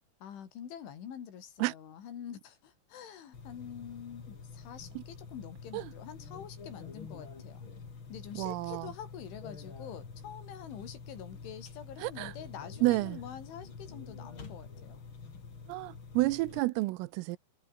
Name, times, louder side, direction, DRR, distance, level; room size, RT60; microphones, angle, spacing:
voice 1, 0.2-7.7 8.1-15.0, left 9 dB, 70° left, 5.8 m, -46 dB
sound 1, 3.3-16.6, left 5 dB, 30° left, 3.1 m, -47 dB
voice 2, 8.4-8.9 12.0-12.3 12.8-13.2 15.7-17.4, right 20 dB, 90° right, 3.5 m, -30 dB
omnidirectional pair, 5.8 m